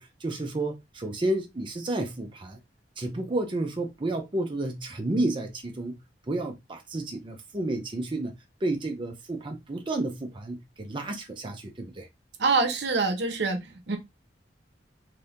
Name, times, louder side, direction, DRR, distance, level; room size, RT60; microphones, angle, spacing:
voice 1, 0.0-2.6 3.0-5.9 6.3-12.1, right 2 dB, 30° right, 0.6 m, -31 dB
voice 2, 12.4-14.0, right 4 dB, 70° right, 0.8 m, -25 dB
2.6 x 2.6 x 3.5 m
head